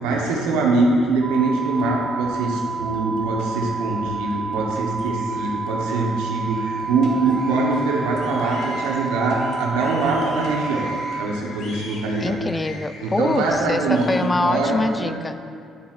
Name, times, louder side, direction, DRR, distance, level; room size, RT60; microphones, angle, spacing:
voice 1, 0.0-10.9 11.2-12.3 13.0-14.1 14.4-15.1, right 3 dB, 85° right, -1 dB, 0.9 m, -23 dB
sound 1, 1.2-11.3, right 4 dB, 50° right, 0.6 m, -29 dB
sound 2, 1.3-15.0, left 3 dB, 65° left, 1.2 m, -41 dB
voice 2, 12.2-15.4, left 2 dB, 20° left, 11 dB, 0.4 m, -24 dB
9.5 x 7.1 x 2.4 m, 2.3 s
supercardioid pair, 65°, 0 cm